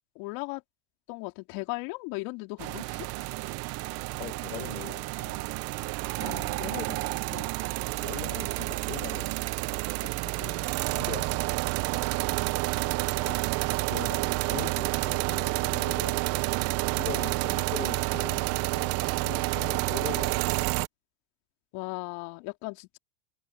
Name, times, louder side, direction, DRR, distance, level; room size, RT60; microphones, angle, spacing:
voice 1, 0.2-0.6 1.1-3.1 6.2-6.9 7.3-7.5 13.2-13.4 21.7-23.0, left 26 dB, 50° left, 3.5 m, -37 dB
sound 1, 2.6-20.9, right 22 dB, 35° right, 0.6 m, -29 dB
voice 2, 4.2-5.5 6.6-6.9 7.9-9.4 10.0-11.6 13.9-16.3 16.9-20.6, left 15 dB, 80° left, 1.3 m, -42 dB
hypercardioid pair, 120°, 45 cm